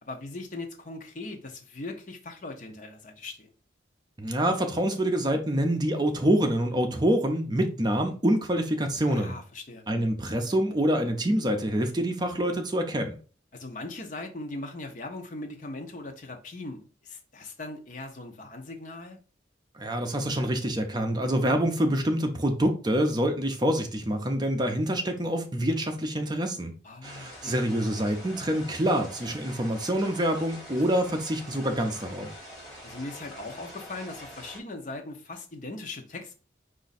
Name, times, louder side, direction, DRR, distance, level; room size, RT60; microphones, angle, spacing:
voice 1, 0.0-3.5 9.1-9.9 13.5-19.2 26.8-27.5 32.8-36.3, left 2 dB, 45° left, 0.7 m, -39 dB
voice 2, 4.2-9.4 9.9-13.2 19.7-26.7 27.0-32.3, right 1 dB, 25° right, 0.5 m, -26 dB
sound 1, 27.0-34.6, equal, ahead, 2.0 m, -45 dB
5.0 x 2.6 x 4.0 m
head